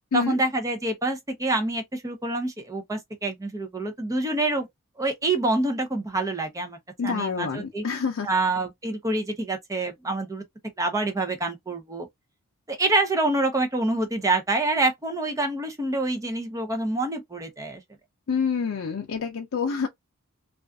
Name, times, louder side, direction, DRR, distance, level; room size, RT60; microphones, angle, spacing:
voice 1, 0.1-4.7 5.0-6.8 7.0-7.8 8.2-10.4 10.8-12.1 12.7-17.8, right 2 dB, 15° right, 0.5 m, -26 dB
voice 2, 7.0-8.3 18.3-19.9, left 6 dB, 75° left, 0.5 m, -27 dB
2.4 x 2.3 x 2.2 m
head